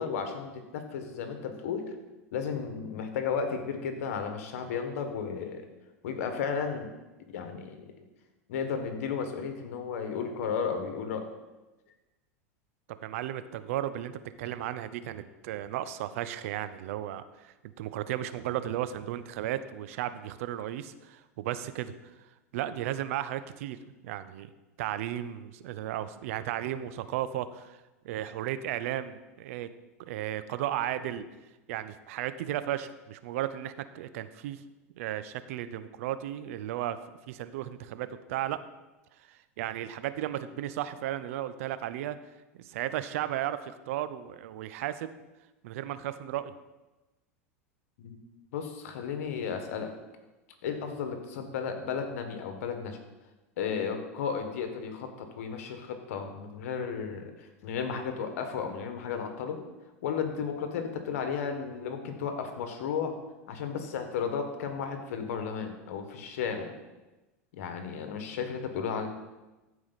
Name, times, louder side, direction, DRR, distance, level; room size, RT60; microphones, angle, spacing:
voice 1, 0.0-2.0 2.3-5.7 6.0-6.9 7.3-7.9 8.5-11.3 48.0-48.2 48.5-49.9 50.6-53.0 53.6-59.6 60.0-63.1 63.5-66.7 67.5-69.1, left 6 dB, 70° left, 6 dB, 1.5 m, -34 dB
voice 2, 13.0-21.9 22.5-24.5 24.8-29.7 30.0-31.3 31.7-34.6 35.0-38.6 39.3-42.2 42.5-45.1 45.6-46.5, right 12 dB, 70° right, 13 dB, 0.6 m, -35 dB
14.0 x 4.9 x 4.1 m, 1.1 s
hypercardioid pair, 105°, 8 cm